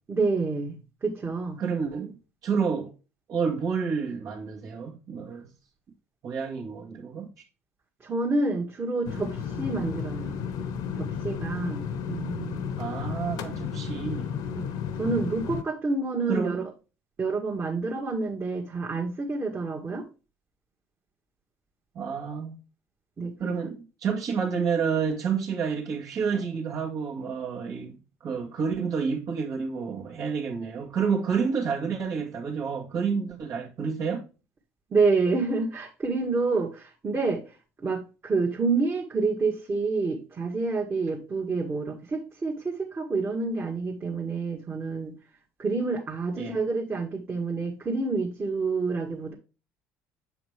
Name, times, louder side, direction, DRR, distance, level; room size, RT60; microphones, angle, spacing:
voice 1, 0.1-1.6 8.0-10.4 11.0-12.7 14.5-14.7 15.0-16.6 17.2-20.1 23.2-23.5 34.9-37.4 37.8-45.1 45.6-49.3, right 3 dB, 30° right, 1.6 m, -28 dB
voice 2, 1.6-2.1 2.4-2.9 3.3-5.5 6.2-7.3 12.8-14.3 16.3-16.7 22.0-22.6 23.4-34.2 46.4-46.6, right 6 dB, 55° right, 1.7 m, -29 dB
sound 1, 9.1-15.6, left 7 dB, 65° left, 0.9 m, -33 dB
7.4 x 5.0 x 3.4 m
hypercardioid pair, 70°, 7 cm